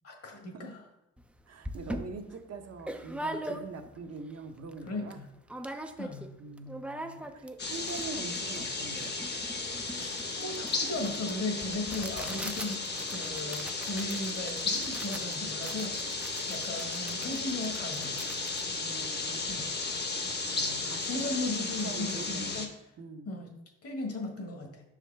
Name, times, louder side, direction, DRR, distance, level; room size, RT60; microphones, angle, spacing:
voice 1, 0.0-0.8 4.8-5.3 6.0-6.3 9.9-18.2 19.5-19.7 21.0-22.7 23.2-23.5 23.8-24.8, left 2 dB, 50° left, 2 dB, 1.6 m, -37 dB
sound 1, 1.2-1.3 1.6-4.0 4.4-4.5 4.7-5.2 5.5-6.3 6.6-19.6, right 1 dB, 5° right, 0.5 m, -42 dB
voice 2, 1.5-5.2 6.4-9.2 18.8-19.5 20.5-21.3 21.8-22.6 23.0-23.3, right 4 dB, 55° right, 5 dB, 0.8 m, -43 dB
sound 2, 7.6-22.7, left 3 dB, 35° left, 1.0 m, -34 dB
6.2 x 4.8 x 3.4 m, 0.86 s
cardioid pair, 90°, 30 cm